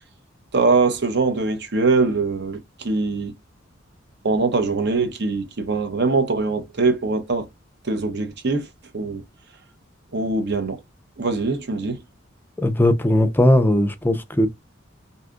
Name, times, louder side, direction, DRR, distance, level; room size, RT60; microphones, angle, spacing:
voice 1, 0.5-3.3 4.2-7.5 7.8-8.7 8.9-9.2 10.1-10.8 11.2-12.0, right 3 dB, 60° right, 0.8 m, -22 dB
voice 2, 12.6-14.5, left 1 dB, 10° left, 0.4 m, -18 dB
2.7 x 2.3 x 3.6 m
head